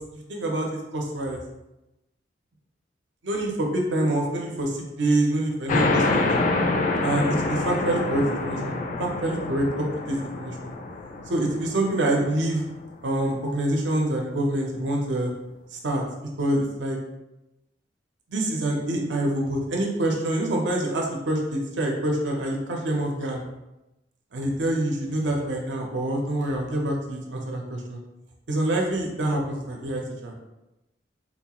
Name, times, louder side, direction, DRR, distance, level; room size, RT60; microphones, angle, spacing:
voice 1, 0.1-1.4 3.2-6.3 7.0-10.7 11.3-12.6 13.0-15.3 15.7-16.0 16.4-17.0 18.3-23.4 24.3-28.0 28.5-30.3, right 1 dB, 85° right, 0 dB, 0.7 m, -26 dB
sound 1, 5.7-12.8, left 3 dB, 45° left, 0.3 m, -26 dB
4.2 x 2.4 x 2.9 m, 0.95 s
head